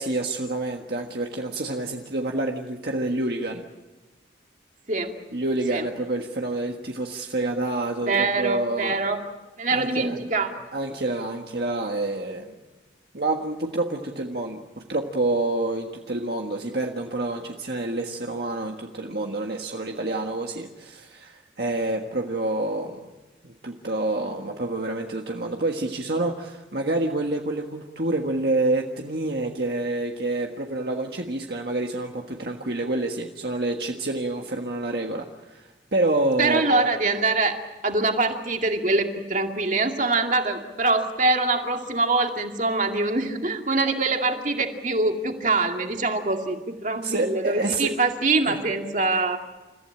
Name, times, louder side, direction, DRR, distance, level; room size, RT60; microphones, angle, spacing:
voice 1, 0.0-3.6 5.3-9.0 9.7-10.2 10.7-12.5 13.1-23.1 23.4-36.9 47.0-48.0 48.5-48.6, right 2 dB, 60° right, 2 dB, 1.6 m, -28 dB
voice 2, 8.0-9.2 9.6-10.7 36.4-37.6 37.8-49.4, right 3 dB, 40° right, 4 dB, 2.3 m, -24 dB
29.5 x 15.0 x 8.8 m, 1.2 s
head